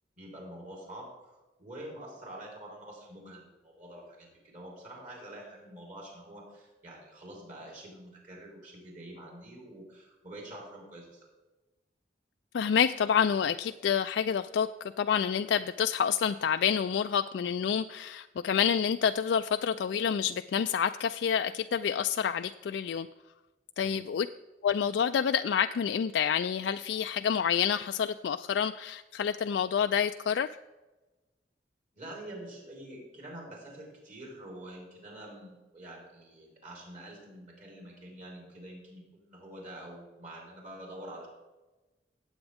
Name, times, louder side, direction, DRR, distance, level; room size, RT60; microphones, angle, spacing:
voice 1, 0.2-11.2 23.8-24.0 31.9-41.3, right 1 dB, 45° right, -2 dB, 4.2 m, -46 dB
voice 2, 12.5-23.1 23.8-24.3 24.6-30.5, left 7 dB, 80° left, 8 dB, 0.3 m, -28 dB
17.5 x 8.0 x 3.5 m, 1.1 s
head